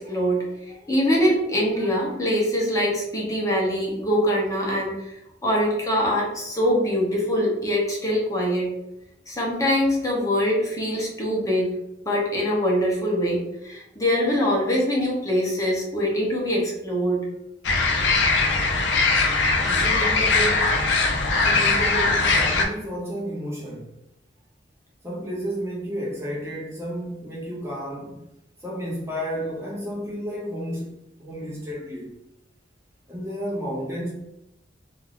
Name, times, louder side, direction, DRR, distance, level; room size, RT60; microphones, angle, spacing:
voice 1, 0.0-5.1 5.4-8.7 9.3-11.7 12.0-17.2, equal, 20° left, 0.7 m, -23 dB
sound 1, 17.6-22.6, left 3 dB, 80° left, 0.4 m, -21 dB
voice 2, 19.6-20.7 21.3-23.9 25.0-28.3 28.6-32.1 33.1-34.1, equal, 15° right, 0.5 m, -31 dB
2.5 x 2.3 x 3.4 m
head